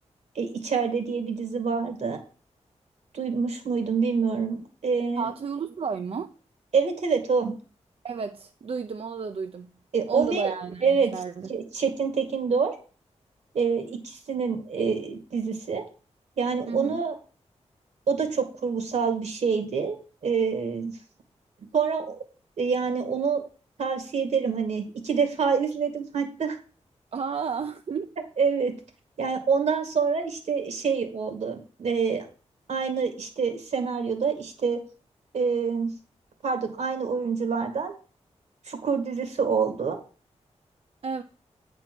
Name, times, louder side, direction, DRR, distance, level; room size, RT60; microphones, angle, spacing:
voice 1, 0.4-2.2 3.1-5.3 6.7-7.6 9.9-10.5 10.8-11.1 11.5-12.8 13.5-15.8 16.4-17.2 18.1-20.0 20.2-20.9 21.7-22.2 22.6-23.4 23.8-26.6 28.4-28.7 29.2-32.2 32.7-34.8 35.3-35.9 36.4-37.9 38.7-40.0, right 5 dB, 75° right, 2.2 m, -26 dB
voice 2, 5.2-6.3 8.0-9.7 10.1-11.5 16.7-17.0 27.1-28.1 41.0-41.2, right 5 dB, 55° right, 0.5 m, -32 dB
8.9 x 4.5 x 6.0 m
wide cardioid pair, 90°, 12 cm